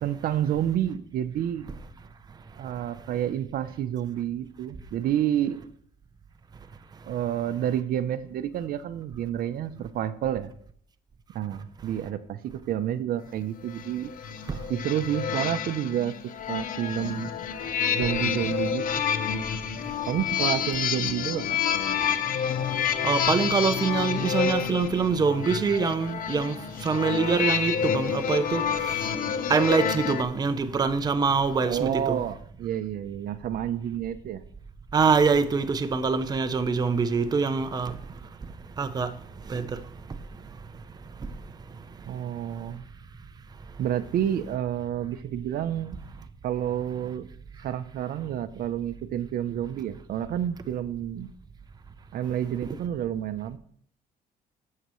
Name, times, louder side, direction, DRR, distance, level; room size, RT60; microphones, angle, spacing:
voice 1, 0.0-1.7 2.6-5.6 7.0-10.5 11.3-14.1 14.5-16.1 16.5-17.3 17.9-19.0 20.1-21.6 31.6-34.4 42.1-42.8 43.8-46.0 46.4-47.3 47.6-51.3 52.1-53.6, right 10 dB, 60° right, 0.6 m, -29 dB
sound 1, 13.7-30.2, left 8 dB, 55° left, 0.9 m, -29 dB
voice 2, 22.8-29.2 29.5-32.2 34.9-38.0 38.8-39.2 39.5-39.8, right 5 dB, 25° right, 0.6 m, -25 dB
12.0 x 7.5 x 3.1 m
cardioid pair, 110°, 17 cm